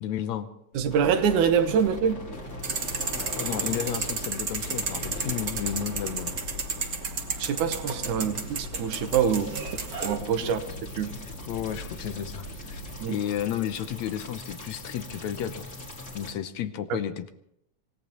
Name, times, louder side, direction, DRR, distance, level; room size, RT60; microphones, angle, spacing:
voice 1, 0.0-0.5 3.4-6.4 8.1-8.3 10.4-10.8 11.1-11.2 11.5-12.8 13.1-15.7 16.1-17.3, left 10 dB, 75° left, 10 dB, 2.0 m, -32 dB
sound 1, 0.7-13.1, left 1 dB, 45° left, 4.2 m, -42 dB
voice 2, 0.7-2.2 7.4-9.5 10.0-10.6 11.0-11.1 13.0-13.2, right 7 dB, 80° right, 9 dB, 2.5 m, -24 dB
sound 2, 0.9-16.3, left 1 dB, 25° left, 2.3 m, -42 dB
sound 3, 2.6-10.2, right 5 dB, 45° right, 1.2 m, -33 dB
26.0 x 17.5 x 3.0 m, 0.76 s
omnidirectional pair, 3.5 m